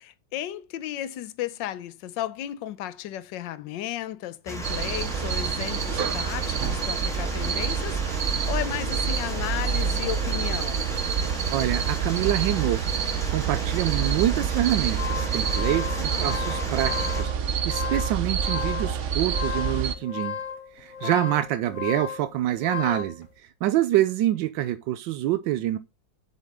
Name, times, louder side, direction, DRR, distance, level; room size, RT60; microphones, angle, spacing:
voice 1, 0.0-10.8 16.0-16.4 21.0-21.3, left 12 dB, 80° left, 1.3 m, -34 dB
sound 1, 4.5-17.2, right 3 dB, ahead, 1.5 m, -35 dB
sound 2, 4.6-19.9, right 7 dB, 55° right, 0.9 m, -27 dB
voice 2, 11.5-12.8 13.3-20.4 20.8-23.3 23.6-25.8, right 14 dB, 85° right, 1.3 m, -26 dB
sound 3, 14.7-23.2, left 7 dB, 45° left, 1.3 m, -34 dB
7.3 x 6.6 x 3.6 m
omnidirectional pair, 2.0 m